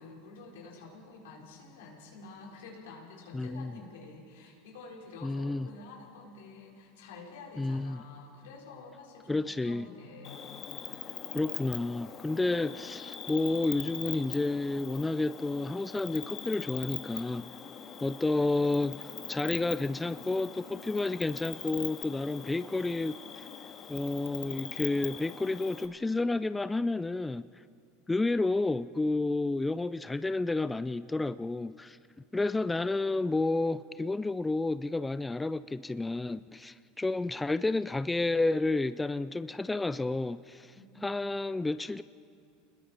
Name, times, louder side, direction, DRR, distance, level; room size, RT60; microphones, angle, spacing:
voice 1, 0.0-10.5 40.7-41.2, left 3 dB, 80° left, -2 dB, 4.6 m, -49 dB
voice 2, 3.3-3.7 5.2-5.7 7.6-8.0 9.3-9.9 11.3-17.5 18.0-23.5 23.9-27.5 28.1-32.0 32.3-40.7 41.0-42.0, left 2 dB, 10° left, 14 dB, 0.4 m, -30 dB
Cricket, 10.2-25.9, left 7 dB, 35° left, 1.8 m, -42 dB
29.5 x 21.0 x 4.4 m, 2.4 s
hypercardioid pair, 95°, 0 cm